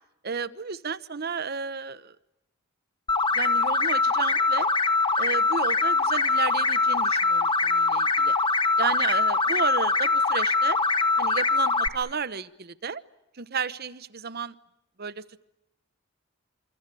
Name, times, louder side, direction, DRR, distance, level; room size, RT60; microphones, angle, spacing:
voice 1, 0.2-2.2 3.3-4.7 5.2-8.3 8.8-10.8 11.2-13.0 13.3-14.5 15.0-15.4, right 5 dB, 50° right, 15 dB, 1.0 m, -32 dB
sound 1, 3.1-11.9, left 3 dB, 25° left, 1.3 m, -23 dB
26.0 x 26.0 x 8.4 m, 0.87 s
head